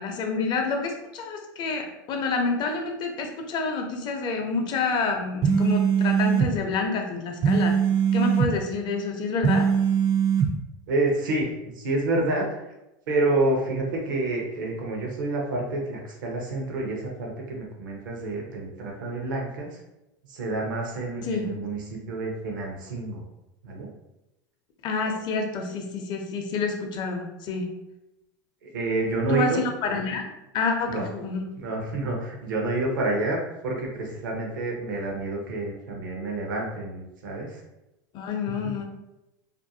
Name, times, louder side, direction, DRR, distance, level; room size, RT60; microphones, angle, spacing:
voice 1, 0.0-7.8 8.1-9.7 21.2-21.5 24.8-27.7 29.3-30.3 30.5-31.4 38.1-38.8, left 4 dB, 45° left, 3 dB, 0.6 m, -28 dB
sound 1, 5.4-6.5 7.4-8.5 9.4-10.5, right 7 dB, 35° right, 0.4 m, -21 dB
voice 2, 10.9-11.5 11.7-12.7 13.1-19.8 20.3-23.2 23.6-23.9 28.6-29.6 30.9-31.0 31.6-37.6 38.6-38.7, right 2 dB, 85° right, 0 dB, 0.7 m, -28 dB
2.5 x 2.2 x 2.6 m, 0.93 s
hypercardioid pair, 100°, 10 cm